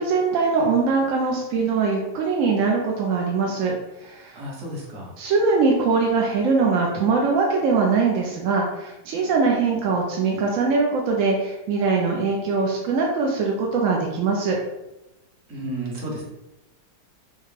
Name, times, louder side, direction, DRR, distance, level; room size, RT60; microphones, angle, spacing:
voice 1, 0.0-3.7 4.0-4.4 5.2-14.6, right 4 dB, 65° right, -1 dB, 0.8 m, -22 dB
voice 2, 4.3-5.1 15.5-16.2, right 1 dB, 50° right, -3 dB, 1.3 m, -32 dB
5.7 x 2.1 x 3.2 m, 0.94 s
omnidirectional pair, 1.8 m